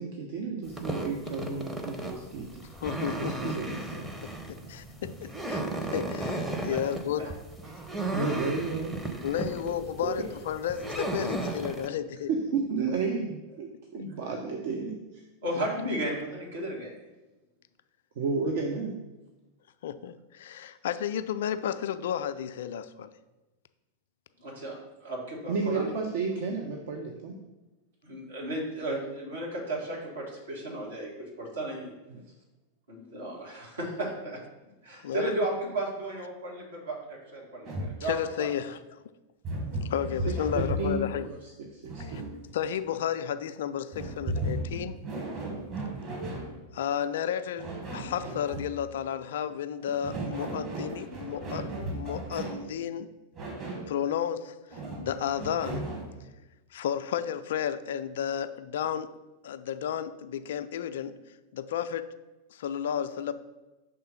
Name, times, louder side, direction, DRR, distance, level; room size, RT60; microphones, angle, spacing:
voice 1, 0.0-2.7 3.2-4.1 7.6-9.3 9.6-9.7 10.0-10.1 12.3-15.2 18.2-19.0 25.5-27.4 32.1-32.2 40.5-41.4 41.7-42.3, right 4 dB, 55° right, 2 dB, 0.6 m, -32 dB
sound 1, 0.7-11.9, right 2 dB, 5° right, 0.7 m, -35 dB
voice 2, 2.8-3.7 4.5-7.3 9.2-12.3 13.9-14.0 15.6-15.9 19.8-23.1 35.0-35.3 38.0-38.8 39.9-41.3 42.0-42.2 42.5-45.0 46.7-51.6 51.9-53.1 53.9-55.8 56.7-59.1 59.4-61.2 61.5-62.1 62.5-63.3, left 9 dB, 60° left, 11 dB, 0.3 m, -32 dB
voice 3, 15.4-16.9 24.4-25.9 28.0-31.9 32.9-34.4 34.8-38.5, right 1 dB, 70° right, -3 dB, 1.8 m, -34 dB
sound 2, 37.6-38.0 39.4-41.1 41.8-42.6 43.9-46.6 47.6-48.7 49.8-52.7 53.4-53.9 54.7-56.1, right 1 dB, 35° right, 1.6 m, -35 dB
5.6 x 3.6 x 5.4 m, 1.1 s
figure-of-eight pair, 90°, 0 cm